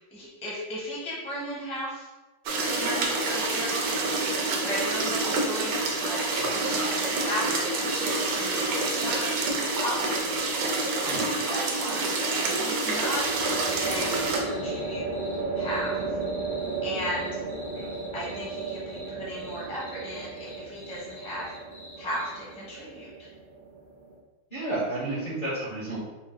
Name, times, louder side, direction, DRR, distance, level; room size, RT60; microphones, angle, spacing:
voice 1, 0.1-2.1 2.7-4.0 4.5-9.3 9.8-10.3 11.5-12.1 12.4-13.3 13.7-15.1 15.5-16.2 16.8-17.4 18.1-21.5 22.0-23.3, equal, 5° left, -7 dB, 0.7 m, -36 dB
sound 1, 2.5-14.4, right 3 dB, 90° right, 1.4 m, -27 dB
sound 2, 4.4-22.5, left 1 dB, 70° left, 2.0 m, -47 dB
sound 3, 9.7-10.3 12.8-24.2, right 3 dB, 65° right, 1.1 m, -35 dB
voice 2, 24.5-26.0, right 2 dB, 35° left, -10 dB, 0.9 m, -32 dB
4.5 x 2.0 x 3.8 m, 1.2 s
omnidirectional pair, 2.1 m